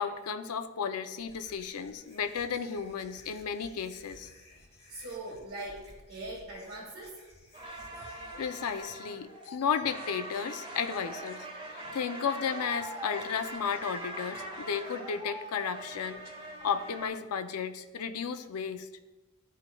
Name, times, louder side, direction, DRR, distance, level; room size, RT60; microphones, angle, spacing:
voice 1, 0.0-4.3 8.4-11.5 11.9-16.2 16.6-18.9, left 6 dB, 85° left, 9 dB, 0.5 m, -33 dB
sound 1, 1.2-8.8, left 1 dB, 30° left, 1.1 m, -56 dB
voice 2, 4.9-7.2, right 2 dB, 80° right, -8 dB, 1.9 m, -41 dB
sound 2, 7.5-17.1, right 1 dB, 25° right, 1.2 m, -42 dB
12.5 x 4.6 x 2.2 m, 1.1 s
head